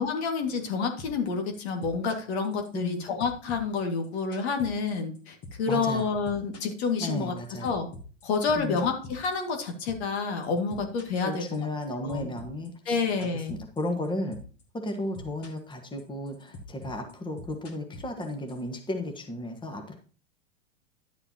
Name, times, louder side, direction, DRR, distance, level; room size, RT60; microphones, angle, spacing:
voice 1, 0.0-7.4 7.6-7.9 8.2-11.6 12.0-12.3 12.9-13.6, left 4 dB, 60° left, 4 dB, 2.1 m, -29 dB
sound 1, 1.0-1.3 1.5-2.9 3.2-5.2 5.4-5.7 6.0-10.2 10.4-11.8 12.1-14.1 14.3-14.6 14.9-15.7 16.0-18.6, left 2 dB, 40° left, 2.5 m, -44 dB
voice 2, 2.7-3.0 5.7-6.1 7.0-7.7 8.5-8.8 11.2-14.4 14.8-19.9, left 1 dB, 10° left, 4 dB, 1.6 m, -34 dB
11.5 x 7.7 x 2.9 m, 0.40 s
hypercardioid pair, 100°, 37 cm